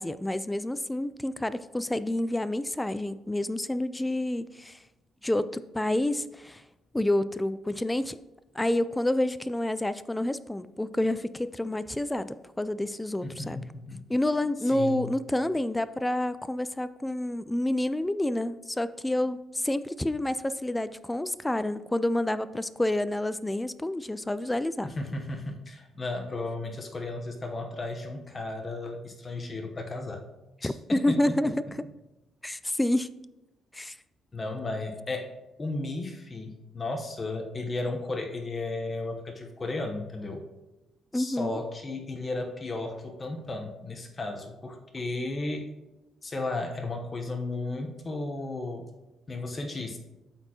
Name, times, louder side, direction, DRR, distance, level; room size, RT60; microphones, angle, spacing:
voice 1, 0.0-4.8 5.2-6.6 6.9-8.2 8.6-13.6 14.1-24.9 30.6-31.6 32.4-33.1 33.7-34.0 41.1-41.6, left 1 dB, 10° left, 14 dB, 0.3 m, -28 dB
voice 2, 13.2-14.1 14.7-15.1 24.8-30.2 30.6-31.2 34.3-35.3 35.6-40.4 41.1-45.7 46.2-48.9 49.3-50.0, left 2 dB, 30° left, 3 dB, 0.9 m, -34 dB
12.0 x 4.3 x 2.9 m, 0.99 s
cardioid pair, 90°, 0 cm